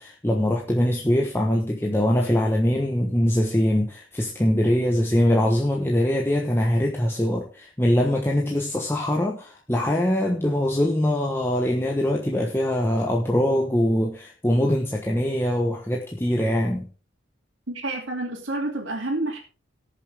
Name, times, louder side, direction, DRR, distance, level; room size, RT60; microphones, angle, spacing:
voice 1, 0.0-16.9, left 1 dB, 10° left, 0 dB, 1.1 m, -23 dB
voice 2, 17.7-19.4, right 2 dB, 75° right, -5 dB, 2.6 m, -29 dB
19.0 x 6.9 x 3.5 m, 0.35 s
head